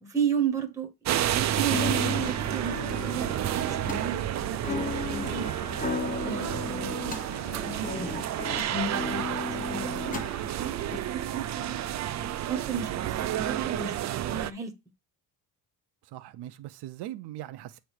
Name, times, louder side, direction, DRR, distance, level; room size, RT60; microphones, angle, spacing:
voice 1, 0.0-0.9 1.3-5.5 6.2-8.2 8.7-9.3 9.6-10.2 10.5-11.8 12.5-13.9 14.2-14.7, right 6 dB, 10° right, 0.9 m, -34 dB
sound 1, 1.0-14.5, right 11 dB, 45° right, 0.4 m, -30 dB
sound 2, 1.7-11.0, left 5 dB, 20° left, 0.8 m, -36 dB
voice 2, 16.0-17.8, right 13 dB, 80° right, 0.7 m, -40 dB
8.1 x 3.2 x 6.4 m
cardioid pair, 155°, 39 cm